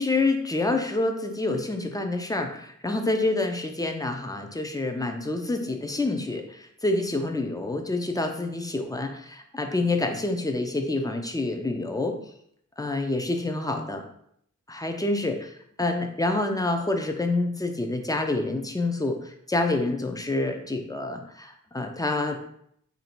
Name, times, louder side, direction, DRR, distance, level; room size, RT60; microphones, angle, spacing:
voice 1, 0.0-12.2 12.8-14.0 14.7-15.4 15.8-22.5, left 2 dB, 10° left, 5 dB, 0.5 m, -27 dB
3.0 x 2.7 x 4.4 m, 0.70 s
wide cardioid pair, 95°, 30 cm